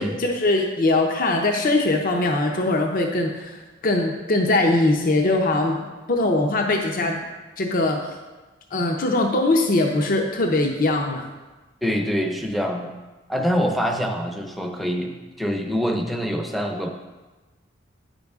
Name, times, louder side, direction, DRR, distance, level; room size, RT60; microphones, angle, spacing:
voice 1, 0.0-5.8 6.1-7.2 7.6-8.0 8.7-11.3, left 2 dB, 45° left, 2 dB, 0.7 m, -21 dB
voice 2, 11.8-12.9 13.3-16.9, equal, ahead, 3 dB, 0.6 m, -25 dB
9.4 x 5.3 x 3.5 m, 1.2 s
head